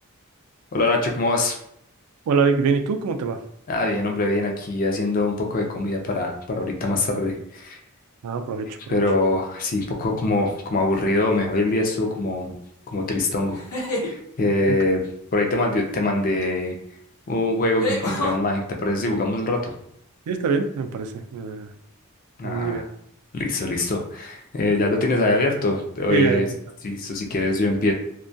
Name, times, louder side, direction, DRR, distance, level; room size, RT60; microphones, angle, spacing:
voice 1, 0.7-1.6 3.7-7.8 8.9-12.5 12.9-13.6 14.0-15.0 15.3-16.8 17.3-19.7 22.4-22.8 23.3-26.5 26.8-27.9, left 2 dB, 40° left, 2 dB, 0.4 m, -23 dB
voice 2, 2.3-3.4 8.2-9.0 14.7-14.8 20.3-21.7 22.4-22.8 26.1-26.4, right 5 dB, 85° right, 7 dB, 0.3 m, -24 dB
sound 1, 10.9-11.4 13.5-14.1 16.4-16.5 17.8-18.4, left 1 dB, 85° left, 0.7 m, -27 dB
2.2 x 2.2 x 2.6 m, 0.72 s
head